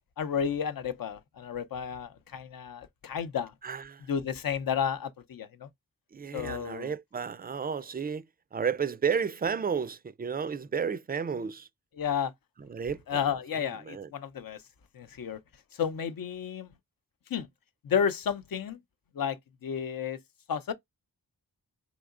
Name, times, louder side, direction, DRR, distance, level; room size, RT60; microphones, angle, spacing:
voice 1, 0.2-3.5 4.1-5.7 6.3-6.9 12.0-12.3 13.1-14.6 15.0-15.4 15.8-16.7 17.3-17.5 17.8-18.8 19.2-20.2 20.5-20.7, left 7 dB, 60° left, 0.6 m, -32 dB
voice 2, 3.6-4.0 6.1-8.2 8.5-11.7 12.7-13.2 13.6-14.1, right 6 dB, 25° right, 0.4 m, -32 dB
3.5 x 2.9 x 2.4 m
cardioid pair, 45°, 39 cm